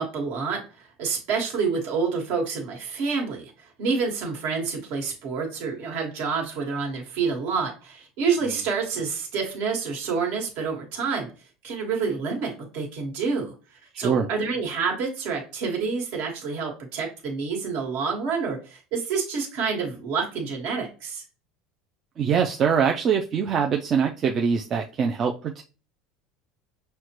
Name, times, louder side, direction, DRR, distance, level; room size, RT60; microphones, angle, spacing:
voice 1, 0.0-11.3 11.6-13.5 14.0-21.2, right 5 dB, 60° right, 0 dB, 1.4 m, -28 dB
voice 2, 13.9-14.3 22.2-25.6, right 6 dB, 30° right, 2 dB, 0.3 m, -23 dB
6.2 x 2.1 x 2.9 m, 0.34 s
cardioid pair, 160°, 0 cm